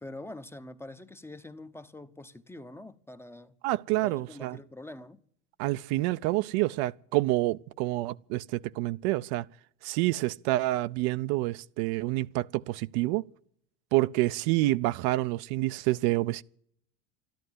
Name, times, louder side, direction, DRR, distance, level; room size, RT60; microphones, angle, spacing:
voice 1, 0.0-3.5 3.9-5.2, left 2 dB, 5° left, 0.7 m, -45 dB
voice 2, 3.6-4.6 5.6-9.4 9.8-13.2 13.9-16.4, right 18 dB, 60° right, 0.6 m, -28 dB
12.5 x 12.0 x 9.5 m
supercardioid pair, 110°, 36 cm